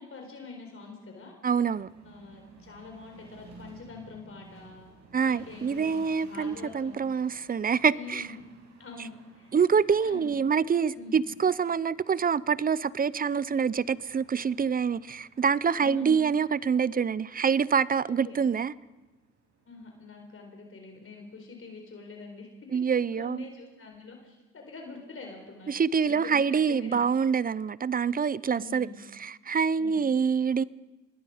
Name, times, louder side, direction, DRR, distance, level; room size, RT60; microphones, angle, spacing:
voice 1, 0.0-1.4 2.0-4.9 5.2-7.0 7.9-8.5 8.8-9.5 10.0-10.3 10.9-11.2 15.7-16.2 18.0-18.5 19.7-22.5 23.2-25.7 26.0-27.0 28.5-29.0 29.8-30.0, left 4 dB, 45° left, 4.1 m, -45 dB
voice 2, 1.4-1.9 5.1-8.3 9.5-18.7 22.7-23.5 25.7-28.9 29.2-30.6, right 6 dB, 30° right, 0.6 m, -26 dB
sound 1, 1.5-20.1, right 4 dB, 70° right, 6.3 m, -56 dB
25.5 x 20.5 x 5.0 m
cardioid pair, 90°, 30 cm